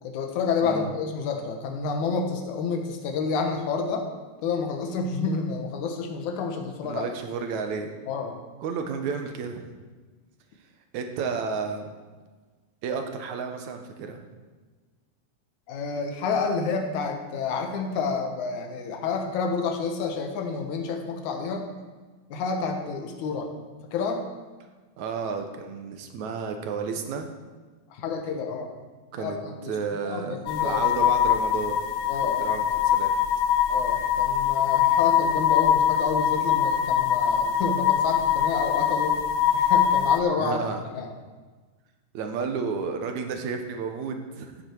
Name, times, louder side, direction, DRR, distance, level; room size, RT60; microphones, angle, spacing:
voice 1, 0.0-4.1 4.4-7.1 8.1-8.4 15.7-21.7 22.3-23.5 23.9-24.2 27.9-28.7 29.2-29.8 30.0-30.8 32.1-32.5 33.7-39.2 39.5-40.6 40.9-41.1, left 5 dB, 65° left, 3 dB, 2.4 m, -29 dB
voice 2, 6.8-7.9 8.6-9.6 10.9-11.9 12.8-14.2 25.0-27.3 29.1-29.4 29.7-31.8 32.2-33.1 40.4-40.8 42.1-44.6, right 5 dB, 70° right, 5 dB, 1.9 m, -32 dB
sound 1, 30.5-40.2, left 9 dB, 85° left, 2.5 m, -23 dB
14.5 x 9.3 x 4.6 m, 1.4 s
omnidirectional pair, 4.3 m